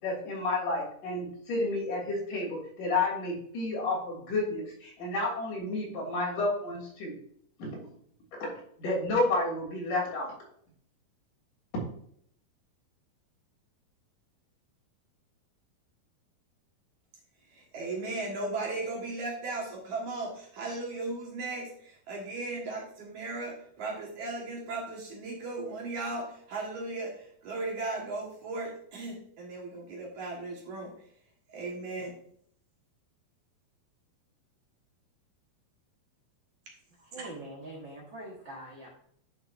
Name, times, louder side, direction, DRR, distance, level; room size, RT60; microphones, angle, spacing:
voice 1, 0.0-7.2 7.6-7.8 8.8-10.3, left 2 dB, 55° left, -3 dB, 4.4 m, -30 dB
voice 2, 17.5-30.9 31.5-32.2 37.2-37.3, right 2 dB, 60° right, -1 dB, 2.6 m, -36 dB
voice 3, 37.0-38.9, right 1 dB, 90° right, -3 dB, 1.0 m, -43 dB
10.5 x 6.2 x 2.5 m, 0.64 s
omnidirectional pair, 4.4 m